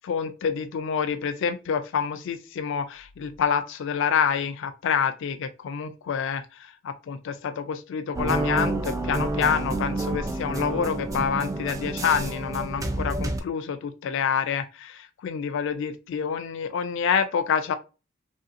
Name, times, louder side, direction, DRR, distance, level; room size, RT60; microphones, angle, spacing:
voice 1, 0.0-6.4 6.8-17.7, left 7 dB, 65° left, 0.3 m, -27 dB
sound 1, 8.1-13.4, right 2 dB, 15° right, 0.4 m, -29 dB
3.0 x 2.7 x 2.4 m
head